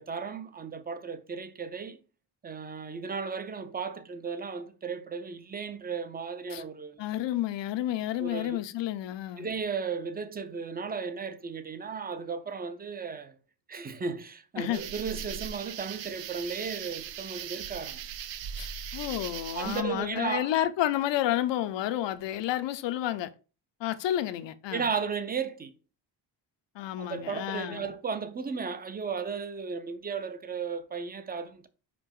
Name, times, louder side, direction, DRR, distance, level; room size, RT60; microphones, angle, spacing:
voice 1, 0.0-2.0 2.4-7.0 8.2-8.6 9.4-13.3 13.7-18.0 19.5-20.5 24.7-25.7 27.0-31.7, right 5 dB, 20° right, 0.5 m, -35 dB
voice 2, 7.0-9.5 14.6-14.8 18.6-23.3 23.8-24.9 26.7-27.9, left 13 dB, 80° left, 0.7 m, -30 dB
sound 1, 14.7-19.8, right 10 dB, 90° right, 0.7 m, -39 dB
sound 2, 18.4-20.2, right 2 dB, 45° right, 2.1 m, -45 dB
5.1 x 5.0 x 3.6 m
cardioid pair, 160°, 43 cm